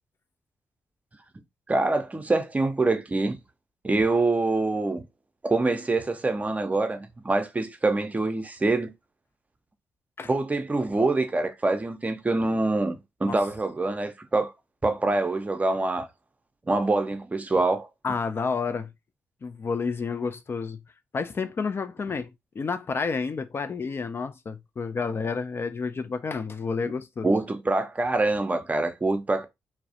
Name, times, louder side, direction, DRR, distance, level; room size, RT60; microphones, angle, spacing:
voice 1, 1.7-3.4 3.8-5.0 5.4-8.9 10.3-14.5 14.8-16.1 16.7-17.9 27.2-29.4, right 2 dB, 25° right, 0.5 m, -25 dB
voice 2, 18.0-18.9 19.4-20.8 21.1-27.3, left 5 dB, 40° left, 0.3 m, -30 dB
2.3 x 2.0 x 2.7 m
hypercardioid pair, 45°, 6 cm